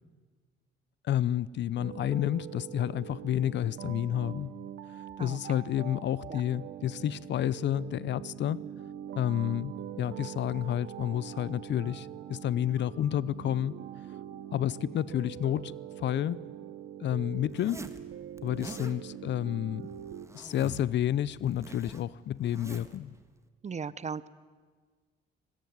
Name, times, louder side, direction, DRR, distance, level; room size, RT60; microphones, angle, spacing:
voice 1, 1.0-4.5 4.9-8.6 9.2-13.8 14.5-16.4 17.0-17.9 18.4-19.9 20.3-23.2, left 11 dB, 65° left, 0.7 m, -30 dB
sound 1, 1.8-20.3, right 11 dB, 80° right, 1.4 m, -43 dB
Zipper (clothing), 17.5-18.0 18.4-18.9 19.8-20.9 21.2-23.0, right 2 dB, 15° right, 1.7 m, -46 dB
voice 2, 23.6-24.3, right 5 dB, 35° right, 0.8 m, -37 dB
22.5 x 20.5 x 9.5 m
cardioid pair, 90°, 20 cm